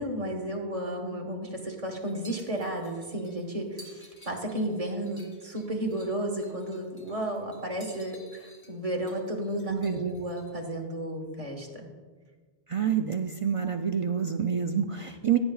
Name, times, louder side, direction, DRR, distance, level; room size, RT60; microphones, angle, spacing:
voice 1, 0.0-11.9, right 1 dB, 35° right, 1 dB, 1.4 m, -33 dB
sound 1, 2.0-10.6, right 1 dB, 10° left, 2.0 m, -55 dB
voice 2, 9.6-10.1 12.7-15.4, right 8 dB, 50° right, 5 dB, 0.4 m, -27 dB
16.5 x 8.9 x 2.4 m, 1.5 s
omnidirectional pair, 1.0 m